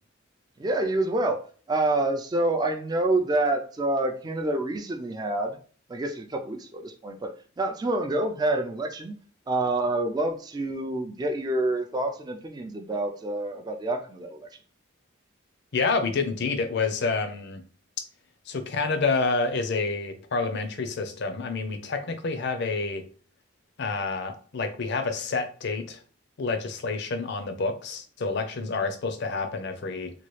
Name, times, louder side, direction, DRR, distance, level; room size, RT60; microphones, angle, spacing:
voice 1, 0.6-1.4 1.7-5.6 5.9-9.1 9.5-14.5, right 2 dB, 20° right, 4 dB, 0.3 m, -27 dB
voice 2, 15.7-17.6 18.5-23.0 23.8-26.0 26.4-30.1, left 4 dB, 55° left, 8 dB, 0.5 m, -28 dB
3.0 x 2.3 x 3.1 m, 0.43 s
head